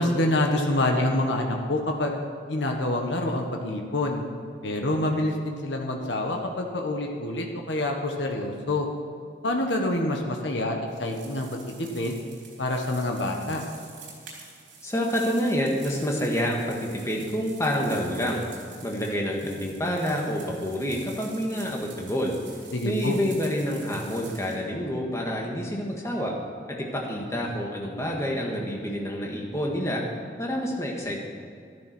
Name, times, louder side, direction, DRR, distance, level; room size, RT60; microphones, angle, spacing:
voice 1, 0.0-2.2 2.5-4.2 4.6-8.9 9.4-12.2 12.6-13.6 22.7-23.2, left 1 dB, 75° left, 2 dB, 1.4 m, -27 dB
sound 1, 10.9-24.6, right 4 dB, 75° right, 3.7 m, -47 dB
voice 2, 14.8-18.4 18.8-22.3 22.8-26.3 26.7-30.0 30.4-31.2, equal, 15° left, -1 dB, 1.7 m, -28 dB
12.5 x 10.5 x 6.1 m, 2.3 s
head